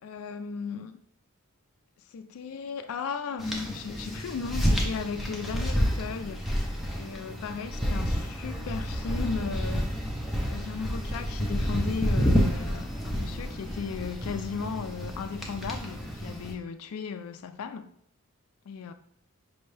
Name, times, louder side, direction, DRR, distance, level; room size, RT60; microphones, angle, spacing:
voice 1, 0.0-1.0 2.1-6.5 7.0-10.0 10.5-17.9 18.7-18.9, left 6 dB, 75° left, 0.3 m, -36 dB
sound 1, 3.4-16.5, equal, ahead, 0.5 m, -29 dB
5.4 x 2.6 x 3.2 m
head